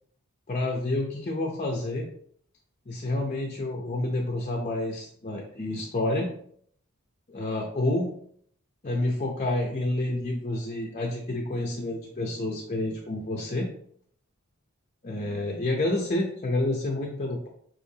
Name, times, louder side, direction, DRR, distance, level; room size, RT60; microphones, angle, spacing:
voice 1, 0.5-2.1 2.9-6.3 7.3-8.1 8.8-13.7 15.0-17.5, left 2 dB, 30° left, 0 dB, 0.6 m, -29 dB
6.4 x 3.0 x 2.7 m, 0.63 s
head